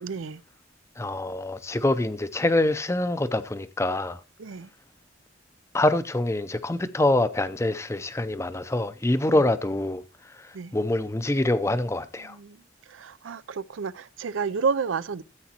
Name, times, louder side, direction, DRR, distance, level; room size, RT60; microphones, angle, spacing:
voice 1, 0.0-0.4 4.4-4.7 9.3-9.4 10.5-10.7 12.3-12.6 12.9-15.2, right 5 dB, 85° right, 0.5 m, -30 dB
voice 2, 1.0-4.2 5.7-10.0 10.3-12.4, left 1 dB, 15° left, 0.5 m, -25 dB
14.0 x 8.5 x 2.9 m
head